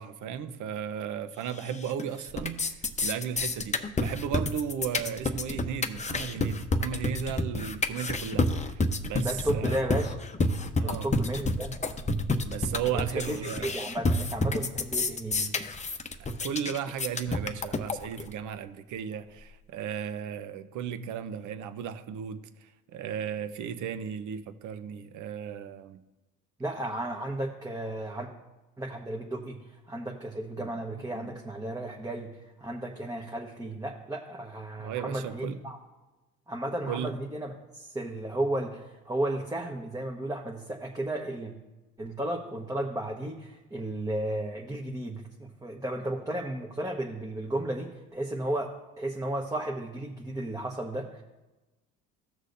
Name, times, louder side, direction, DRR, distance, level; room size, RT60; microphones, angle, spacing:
voice 1, 0.0-9.8 10.6-11.1 12.4-13.8 16.2-26.0 30.6-31.3 34.8-35.6 36.9-37.2, right 8 dB, 60° right, 0.9 m, -35 dB
sound 1, 1.6-2.0 2.3-18.3, left 2 dB, 20° left, 0.9 m, -29 dB
voice 2, 9.2-10.1 10.8-11.7 12.9-15.6 26.6-28.3 28.8-35.8 36.5-41.5 42.0-48.7 49.0-51.2, right 1 dB, 10° right, 1.3 m, -34 dB
15.5 x 6.3 x 2.6 m
supercardioid pair, 80°, 34 cm